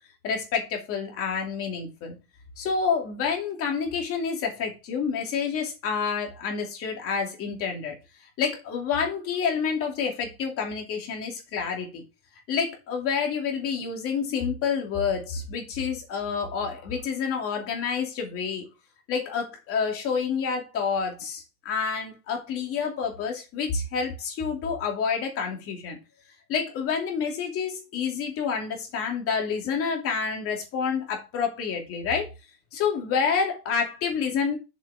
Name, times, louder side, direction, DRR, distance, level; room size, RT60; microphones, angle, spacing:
voice 1, 0.2-2.1 2.6-7.9 8.4-12.0 12.5-18.7 19.1-26.0 26.5-32.3 32.7-34.6, left 6 dB, 30° left, 2.6 m, -28 dB
7.9 x 7.4 x 3.5 m
supercardioid pair, 165°, 47 cm